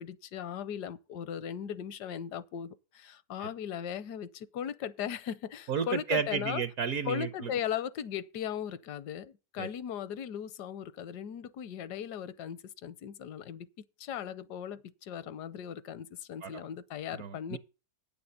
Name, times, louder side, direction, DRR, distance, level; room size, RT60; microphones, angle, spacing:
voice 1, 0.0-6.6 7.1-13.7 14.0-17.6, left 9 dB, 75° left, 1.3 m, -38 dB
voice 2, 5.7-7.5 9.6-9.7 16.4-16.6 17.1-17.6, right 7 dB, 65° right, 1.1 m, -33 dB
9.0 x 7.0 x 6.5 m
omnidirectional pair, 1.8 m